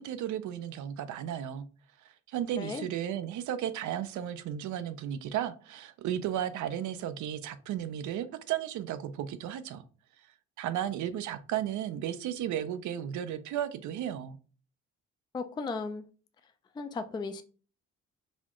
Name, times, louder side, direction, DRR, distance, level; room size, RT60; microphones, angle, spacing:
voice 1, 0.0-1.7 2.0-9.8 10.6-14.4, right 10 dB, 75° right, 0.5 m, -34 dB
voice 2, 2.6-2.9 15.3-16.0 16.8-17.4, left 4 dB, 15° left, 0.3 m, -35 dB
4.1 x 2.4 x 3.0 m
cardioid pair, 90°, 30 cm